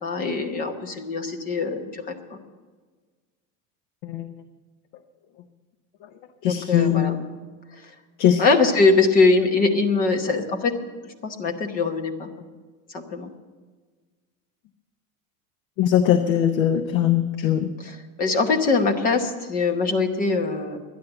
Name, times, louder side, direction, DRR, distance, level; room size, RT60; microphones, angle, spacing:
voice 1, 0.0-2.4 6.4-7.2 8.4-10.7 11.0-12.3 12.9-13.3 17.8-20.8, left 3 dB, 20° left, 4 dB, 0.9 m, -22 dB
voice 2, 6.4-7.1 8.2-8.4 15.8-17.7, left 10 dB, 45° left, 8 dB, 0.7 m, -20 dB
12.0 x 10.5 x 7.9 m, 1.4 s
cardioid pair, 180°, 42 cm